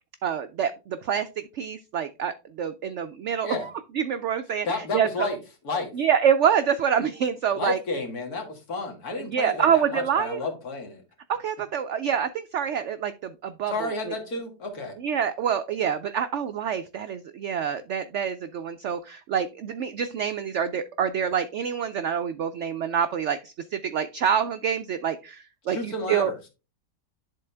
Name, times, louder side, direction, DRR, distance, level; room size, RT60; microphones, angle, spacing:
voice 1, 0.2-3.7 3.9-5.3 5.9-7.8 9.2-10.4 11.3-14.1 15.0-26.3, right 8 dB, 85° right, 10 dB, 0.6 m, -26 dB
voice 2, 4.7-5.4 5.6-5.9 7.5-11.0 13.7-14.9 25.7-26.4, left 2 dB, 60° left, 3 dB, 2.2 m, -31 dB
11.0 x 3.8 x 3.3 m, 0.30 s
omnidirectional pair, 1.8 m